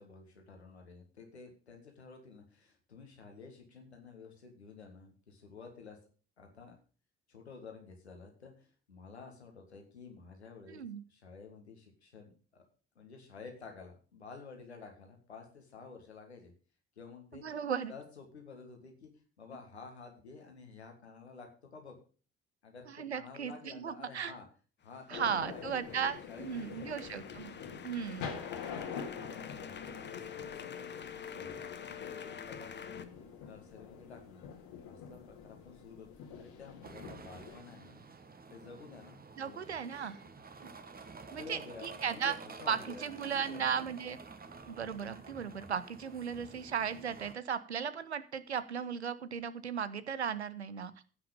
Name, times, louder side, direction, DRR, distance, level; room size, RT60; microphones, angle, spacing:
voice 1, 0.0-6.0 6.4-6.7 7.3-12.6 13.0-16.5 17.0-17.4 17.9-22.0 22.6-24.5 24.8-27.2 28.6-33.0 33.4-34.5 34.9-36.1 36.4-38.0 38.5-39.6 41.3-43.1 43.4-43.9, left 5 dB, 85° left, 3 dB, 1.8 m, -52 dB
voice 2, 10.7-11.0 17.4-17.9 22.9-24.3 25.1-27.5 27.8-28.3 39.4-40.2 40.6-40.7 41.3-42.3 42.7-44.2 44.7-50.9, right 7 dB, 90° right, 14 dB, 0.6 m, -36 dB
sound 1, 24.9-33.0, left 7 dB, 35° left, 1.1 m, -47 dB
sound 2, 25.1-37.6, left 6 dB, 65° left, 2.2 m, -46 dB
sound 3, 36.8-47.3, right 4 dB, 30° right, 1.4 m, -50 dB
15.0 x 6.0 x 5.1 m, 0.38 s
figure-of-eight pair, 45°, 32 cm